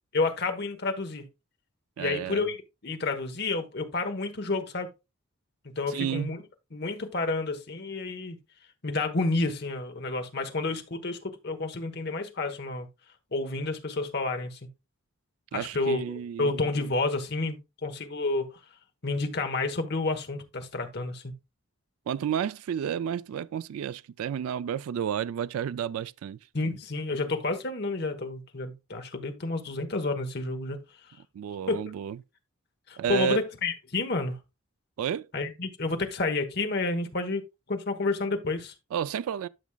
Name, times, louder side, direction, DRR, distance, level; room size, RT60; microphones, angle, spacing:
voice 1, 0.1-1.3 2.0-2.6 2.8-4.9 5.8-6.4 6.7-8.4 8.8-12.9 13.3-14.6 15.5-18.5 19.0-21.3 26.5-30.8 31.7-31.8 32.9-34.4 35.3-38.7, left 3 dB, 50° left, 1.2 m, -30 dB
voice 2, 2.0-2.4 5.9-6.4 15.5-16.5 22.1-26.4 31.3-32.2 33.0-33.4 35.0-35.3 38.9-39.5, right 8 dB, 80° right, 0.3 m, -31 dB
12.0 x 6.1 x 2.3 m
head